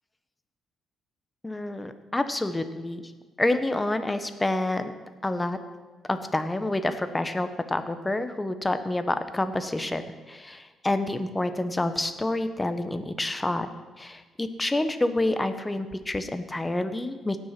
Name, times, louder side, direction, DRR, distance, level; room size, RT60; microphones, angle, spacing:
voice 1, 1.4-3.0 3.4-4.9 5.2-5.6 6.1-13.7 14.0-17.4, left 2 dB, 15° left, 10 dB, 1.0 m, -28 dB
17.5 x 6.3 x 5.9 m, 1.3 s
cardioid pair, 90°, 0 cm